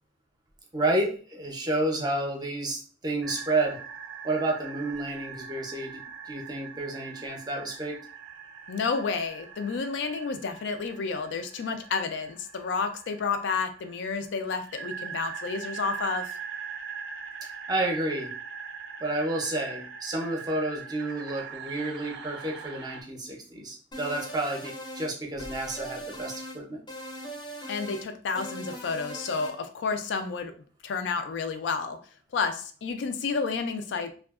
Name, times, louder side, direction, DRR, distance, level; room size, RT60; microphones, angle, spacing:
voice 1, 0.7-3.8 4.2-8.0 17.7-18.3 19.0-26.8, right 2 dB, 20° right, 1 dB, 0.5 m, -30 dB
sound 1, 3.2-23.0, right 6 dB, 75° right, 0.4 m, -42 dB
voice 2, 8.7-16.3 27.7-30.5 30.8-32.0 32.3-34.1, left 5 dB, 80° left, 8 dB, 0.4 m, -30 dB
sound 2, 23.9-25.1 25.4-26.6 26.9-28.1 28.4-29.6, equal, 25° left, 0.5 m, -40 dB
2.6 x 2.3 x 2.3 m, 0.41 s
head